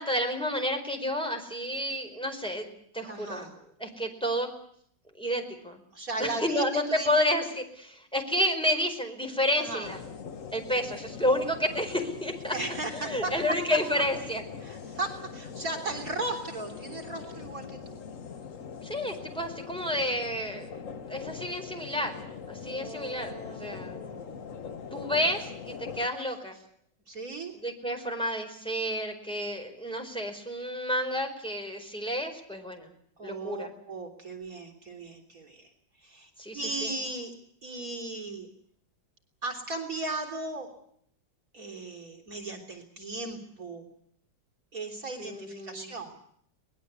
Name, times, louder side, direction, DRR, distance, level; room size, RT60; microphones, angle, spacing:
voice 1, 0.0-3.5 3.8-4.5 5.2-5.8 6.2-10.0 10.5-12.5 12.9-14.4 18.8-22.2 22.5-24.0 24.9-26.6 27.6-32.9 33.2-33.7 36.4-36.9 45.2-45.9, left 1 dB, ahead, 4 dB, 4.7 m, -30 dB
voice 2, 3.1-3.6 5.9-7.1 9.6-9.9 12.5-13.3 13.7-13.8 14.6-18.0 22.7-24.4 24.7-25.1 27.1-27.5 33.2-35.7 36.0-37.3 37.6-38.5 39.4-40.7 41.5-43.9 44.7-46.1, right 2 dB, 45° right, 3 dB, 4.0 m, -37 dB
sound 1, 9.8-26.1, left 6 dB, 45° left, 1.4 m, -42 dB
24.0 x 20.0 x 8.3 m, 0.66 s
omnidirectional pair, 2.1 m